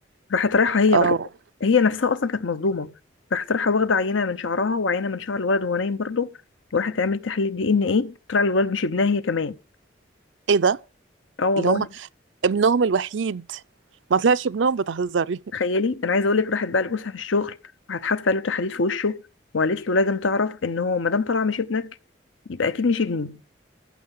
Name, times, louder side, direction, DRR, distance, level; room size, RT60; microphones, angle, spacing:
voice 1, 0.3-1.2 1.6-2.9 3.3-6.3 6.7-9.5 11.4-11.9 15.5-17.6 17.9-19.2 19.5-21.9 22.5-23.4, left 4 dB, 85° left, 0.8 m, -23 dB
voice 2, 12.4-13.6 14.1-15.4, right 5 dB, 75° right, 0.5 m, -21 dB
14.5 x 6.7 x 5.6 m
head